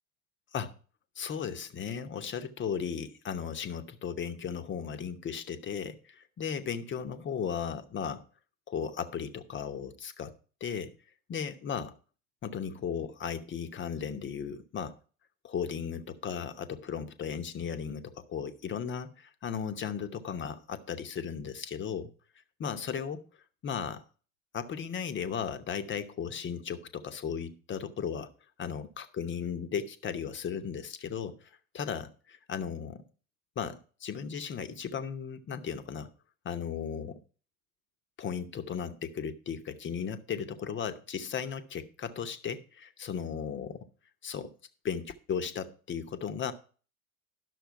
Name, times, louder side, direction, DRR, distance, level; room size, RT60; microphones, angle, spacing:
voice 1, 1.2-8.2 8.7-10.3 10.6-10.9 11.3-11.9 12.4-14.9 15.4-22.1 22.6-23.2 23.6-24.0 24.5-28.3 28.6-33.0 33.6-36.1 36.4-37.2 38.2-43.9 44.2-44.5 44.8-46.5, left 7 dB, 25° left, 0.9 m, -36 dB
11.0 x 6.5 x 4.6 m
figure-of-eight pair, 70°, 42 cm